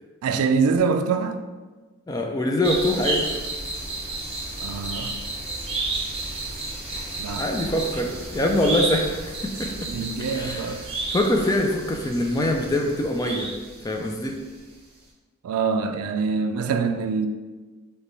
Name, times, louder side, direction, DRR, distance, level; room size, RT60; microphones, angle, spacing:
voice 1, 0.2-1.4 4.6-5.1 7.2-7.5 9.9-10.8 15.4-17.3, right 5 dB, 85° right, 0.3 m, -24 dB
voice 2, 2.1-3.3 7.4-9.9 10.3-10.8 11.1-13.5 13.8-14.4, left 1 dB, 15° left, 0.4 m, -24 dB
sound 1, 2.6-14.3 14.6-14.7, right 2 dB, 30° right, 0.8 m, -32 dB
5.0 x 2.2 x 3.1 m
head